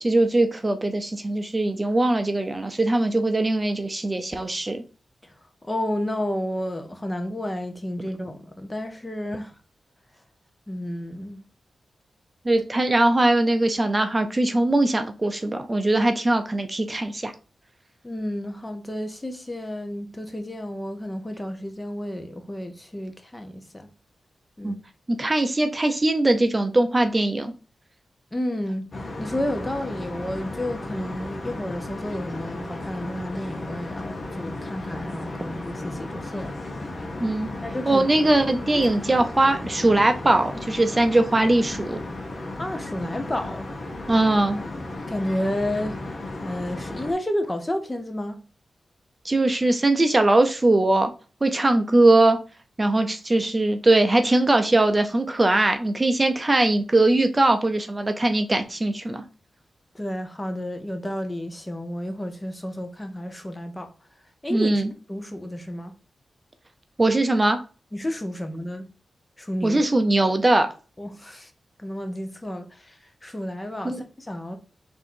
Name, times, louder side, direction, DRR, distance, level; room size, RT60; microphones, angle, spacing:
voice 1, 0.0-4.8 12.4-17.3 24.6-24.8 25.1-27.5 37.2-37.5 37.9-42.0 44.1-44.6 49.2-51.1 51.4-52.4 52.8-59.2 64.5-64.9 67.0-67.6 69.6-70.7 73.8-74.0, right 2 dB, 30° right, 0.6 m, -21 dB
voice 2, 5.6-9.5 10.7-11.4 18.0-23.9 24.6-24.8 28.3-28.9 29.2-36.6 37.6-38.1 38.7-38.8 42.6-43.7 45.1-46.0 46.4-48.4 59.9-63.9 64.4-64.8 65.1-65.9 67.9-68.9 69.4-69.8 71.0-71.5 71.8-74.6, left 1 dB, 20° left, 0.9 m, -31 dB
sound 1, 28.9-47.1, left 2 dB, 50° left, 1.0 m, -35 dB
3.7 x 2.7 x 4.3 m
cardioid pair, 55°, 0 cm